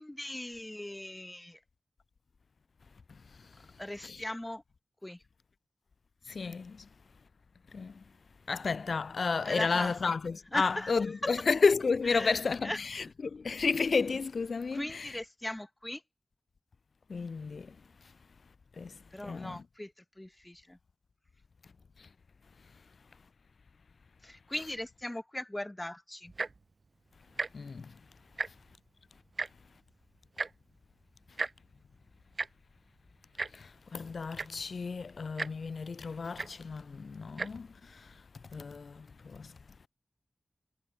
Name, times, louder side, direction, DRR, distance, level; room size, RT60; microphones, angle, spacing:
voice 1, 0.0-1.6 3.8-4.6 5.0-5.2 9.4-10.1 10.5-10.9 11.2-11.3 12.1-12.8 14.7-16.0 19.1-20.8 24.2-26.3, left 1 dB, 15° left, 3.0 m, -39 dB
voice 2, 6.3-6.8 7.7-7.9 8.5-15.2 17.1-17.7 18.8-18.9 19.2-19.6 27.5-27.9 33.5-37.7 38.5-39.5, left 4 dB, 80° left, 1.5 m, -32 dB
Tick-tock, 26.3-26.6 27.3-27.5 27.8-27.9 28.2-28.8 29.4-29.5 30.4-30.5 31.4-31.5 32.4-32.5 33.4-33.5 34.1-34.2 34.3-34.7 35.4-35.5 36.4-36.5 37.3-37.5 38.2-38.3, right 3 dB, 60° right, 1.4 m, -34 dB
wide cardioid pair, 60°, 0 cm